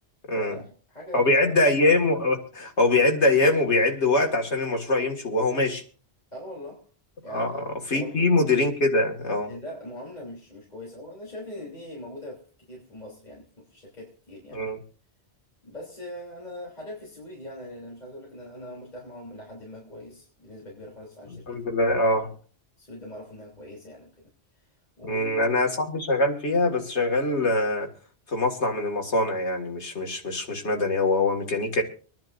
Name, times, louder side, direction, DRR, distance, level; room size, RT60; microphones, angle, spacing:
voice 1, 0.3-1.6 6.3-6.9 7.2-7.6 7.9-8.2 9.3-14.7 15.6-21.6 22.0-22.2 22.8-24.3 25.0-25.6, left 1 dB, 40° left, 3.5 m, -41 dB
voice 2, 1.1-5.8 7.3-7.5 7.9-9.5 14.5-14.8 21.5-22.3 25.0-27.9 28.3-31.8, left 2 dB, 85° left, 2.4 m, -23 dB
25.5 x 10.5 x 2.6 m
omnidirectional pair, 1.1 m